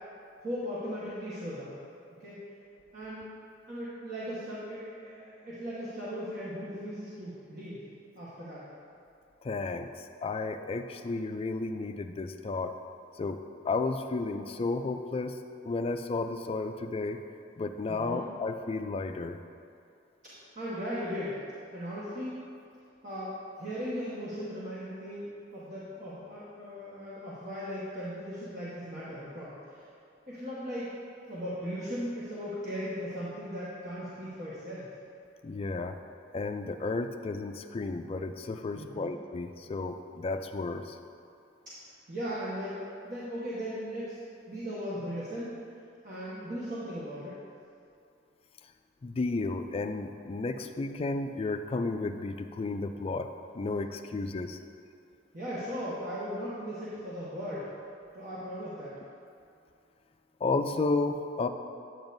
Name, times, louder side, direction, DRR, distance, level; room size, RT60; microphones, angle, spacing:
voice 1, 0.4-1.7 2.2-2.4 2.9-3.2 3.7-7.8 8.1-8.7 17.9-18.2 20.2-21.4 21.7-22.4 23.0-29.8 30.3-30.9 31.3-34.9 38.7-39.1 41.7-42.8 43.0-45.6 46.0-47.4 55.3-57.7 58.1-58.9, equal, 45° right, -9 dB, 1.2 m, -38 dB
voice 2, 9.4-12.8 13.2-17.2 17.6-19.4 35.4-36.0 36.3-41.0 49.0-54.6 60.4-61.5, left 3 dB, 30° left, 7 dB, 0.3 m, -33 dB
8.9 x 7.9 x 2.6 m, 2.5 s
head